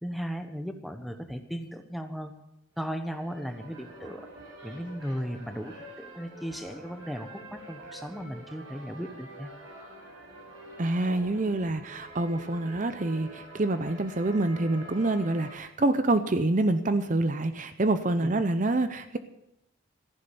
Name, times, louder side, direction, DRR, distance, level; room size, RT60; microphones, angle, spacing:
voice 1, 0.0-2.3 2.8-4.3 4.6-9.5 18.2-18.4, equal, ahead, 7 dB, 1.1 m, -36 dB
sound 1, 2.7-15.6, right 1 dB, 70° right, 7.7 m, -47 dB
voice 2, 10.8-19.2, right 2 dB, 40° right, 10 dB, 0.6 m, -26 dB
14.5 x 11.0 x 7.0 m, 0.83 s
head